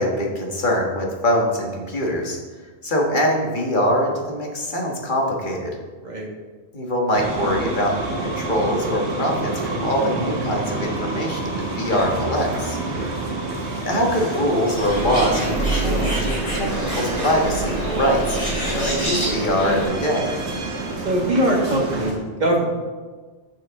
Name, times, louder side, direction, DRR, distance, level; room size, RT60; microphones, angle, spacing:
voice 1, 0.0-2.4 2.8-5.7 6.7-12.8 13.9-16.7 17.0-18.4 18.7-20.3, equal, 45° left, 0 dB, 1.6 m, -23 dB
sound 1, 7.1-22.1, right 2 dB, 70° right, 1.6 m, -29 dB
voice 2, 12.9-13.2 21.0-22.6, right 1 dB, 40° right, -1 dB, 1.7 m, -22 dB
Bird, 14.7-19.8, right 1 dB, 30° left, 2.7 m, -25 dB
11.0 x 6.4 x 3.6 m, 1.4 s
omnidirectional pair, 1.2 m